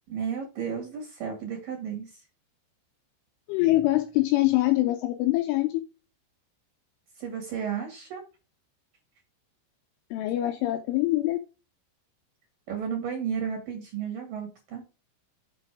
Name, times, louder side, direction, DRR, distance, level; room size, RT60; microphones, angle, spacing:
voice 1, 0.1-2.2 7.1-8.2 12.7-14.8, right 7 dB, 50° right, 3.1 m, -33 dB
voice 2, 3.5-5.8 10.1-11.4, left 17 dB, 80° left, 3.0 m, -24 dB
7.6 x 6.1 x 4.8 m
omnidirectional pair, 6.0 m